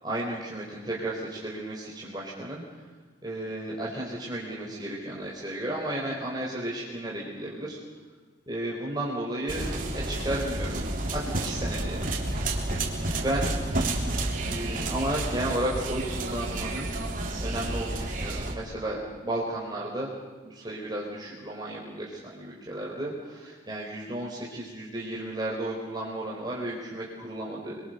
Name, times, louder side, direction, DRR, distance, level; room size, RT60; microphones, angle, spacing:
voice 1, 0.0-2.6 3.2-7.8 8.5-10.8 11.1-12.1 13.1-13.5 14.4-16.9 17.4-20.1 20.4-27.8, right 1 dB, 20° right, -4 dB, 4.4 m, -33 dB
sound 1, 9.5-18.5, right 2 dB, 45° right, 3.7 m, -30 dB
29.0 x 23.5 x 6.7 m, 1.4 s
head